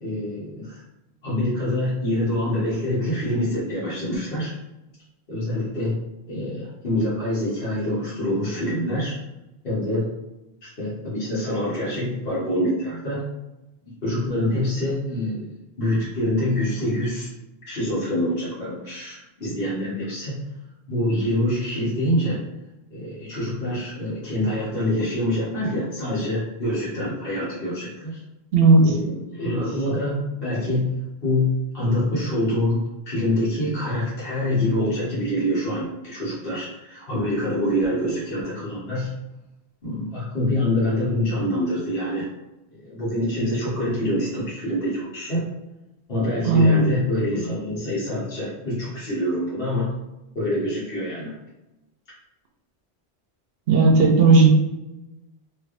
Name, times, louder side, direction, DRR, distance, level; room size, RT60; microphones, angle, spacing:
voice 1, 0.0-0.8 1.2-4.5 5.3-6.0 6.3-9.1 9.6-10.1 10.6-13.2 13.8-17.3 17.7-20.4 20.9-22.4 22.9-28.2 28.8-30.9 31.2-32.8 33.1-39.1 39.8-42.3 42.7-45.5 46.1-49.9 50.3-51.3, left 1 dB, 60° left, -10 dB, 1.2 m, -25 dB
voice 2, 28.5-28.9 46.5-46.9 53.7-54.5, right 3 dB, 70° right, 1 dB, 0.8 m, -14 dB
3.2 x 2.7 x 2.5 m, 0.97 s
omnidirectional pair, 1.1 m